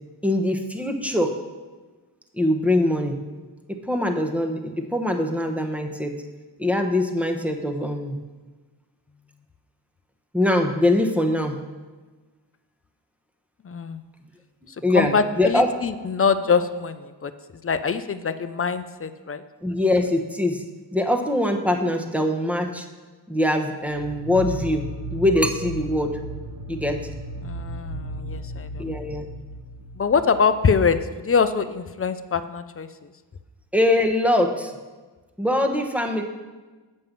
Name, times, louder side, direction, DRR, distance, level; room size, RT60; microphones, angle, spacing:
voice 1, 0.2-1.4 2.4-3.2 3.9-6.1 6.6-8.2 10.3-11.6 14.8-15.7 19.6-20.6 20.9-22.9 23.3-26.2 26.7-27.0 28.8-29.3 33.7-34.7 35.4-36.2, left 1 dB, 5° right, 4 dB, 1.0 m, -22 dB
voice 2, 13.6-14.0 14.9-17.3 17.6-19.4 27.4-28.9 30.0-32.9, left 5 dB, 35° left, 11 dB, 0.5 m, -24 dB
sound 1, 23.8-31.1, right 1 dB, 65° right, 0.9 m, -35 dB
7.5 x 5.3 x 7.5 m, 1.3 s
cardioid pair, 80°, 42 cm